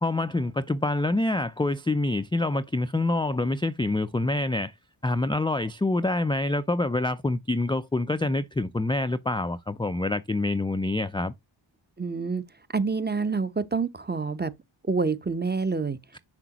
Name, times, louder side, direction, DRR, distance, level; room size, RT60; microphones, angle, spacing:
voice 1, 0.0-4.7 5.0-11.3, left 2 dB, 10° left, 0.4 m, -26 dB
voice 2, 12.0-12.4 12.7-14.5 14.8-16.0, right 4 dB, 20° right, 0.7 m, -27 dB
6.7 x 6.1 x 2.9 m
cardioid pair, 55°, 49 cm